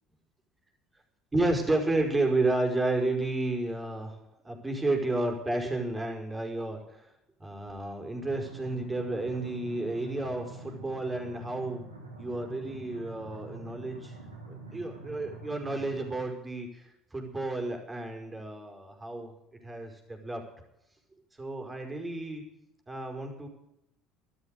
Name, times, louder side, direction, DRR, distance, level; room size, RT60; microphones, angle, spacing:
voice 1, 1.3-4.2 4.4-6.8 7.4-11.8 12.2-14.1 14.5-19.3 19.6-20.4 21.4-22.4 22.9-23.5, right 2 dB, 15° right, 2 dB, 5.1 m, -31 dB
sound 1, 8.2-16.2, right 2 dB, 90° right, 3.4 m, -45 dB
15.0 x 12.5 x 6.6 m, 0.82 s
figure-of-eight pair, 60°, 0 cm